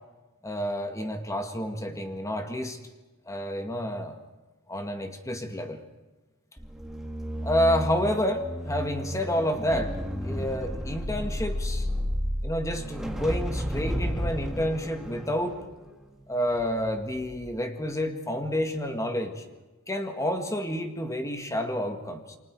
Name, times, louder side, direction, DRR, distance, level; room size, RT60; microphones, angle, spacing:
voice 1, 0.4-2.8 3.3-4.2 4.7-5.8 7.4-11.9 12.4-15.7 16.3-19.5 19.9-22.4, equal, 15° left, 6 dB, 1.8 m, -29 dB
sound 1, 6.6-16.9 17.2-17.5, equal, ahead, 1.8 m, -32 dB
28.5 x 24.5 x 4.7 m, 1.2 s
head